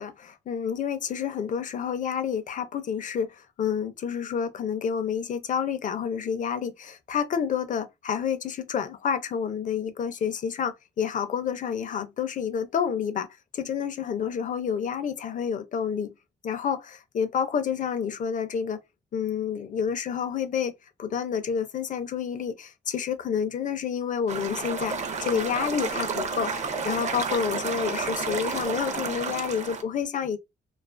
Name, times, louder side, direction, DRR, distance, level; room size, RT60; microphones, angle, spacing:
voice 1, 0.0-13.3 13.5-16.1 16.4-18.8 19.1-20.7 21.0-30.4, left 7 dB, 45° left, 0.4 m, -29 dB
sound 1, 24.3-29.8, right 5 dB, 40° right, 0.5 m, -31 dB
2.4 x 2.3 x 2.4 m
wide cardioid pair, 130°, 18 cm